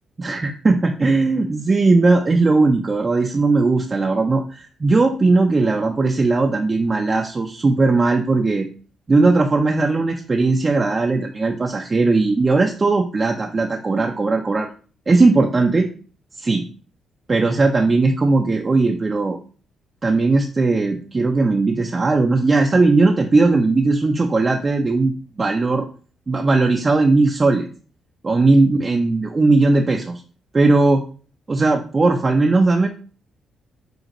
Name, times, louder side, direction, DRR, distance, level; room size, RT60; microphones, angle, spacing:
voice 1, 0.2-8.7 9.1-14.7 15.1-15.9 16.4-16.6 17.3-19.4 20.0-25.1 25.4-25.9 26.3-27.7 28.2-30.2 30.5-31.0 31.5-32.9, right 3 dB, 35° right, 2 dB, 0.5 m, -18 dB
5.1 x 2.4 x 3.0 m, 0.40 s
supercardioid pair, 55°, 0 cm